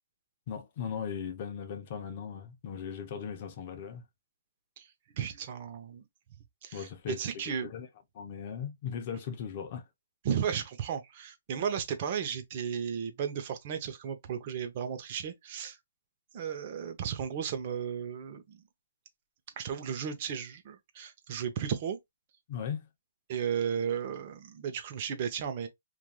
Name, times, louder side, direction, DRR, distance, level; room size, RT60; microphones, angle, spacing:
voice 1, 0.5-4.1 6.7-7.9 8.1-9.9 22.5-22.9, left 7 dB, 40° left, 0.6 m, -38 dB
voice 2, 5.1-6.0 6.6-7.7 10.2-15.8 16.3-18.6 19.6-22.0 23.3-25.7, right 8 dB, 40° right, 0.7 m, -34 dB
3.1 x 2.5 x 2.2 m
hypercardioid pair, 155°, 0 cm